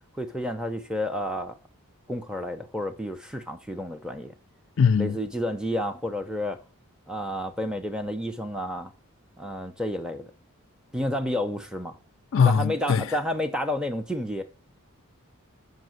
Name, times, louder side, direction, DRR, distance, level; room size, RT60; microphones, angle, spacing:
voice 1, 0.2-1.6 2.1-4.3 5.0-6.6 7.1-8.9 9.4-10.3 10.9-12.0 12.4-14.4, equal, 5° right, 0.6 m, -30 dB
voice 2, 4.8-5.2 12.3-13.0, left 6 dB, 55° left, 0.4 m, -21 dB
7.4 x 5.7 x 7.7 m
head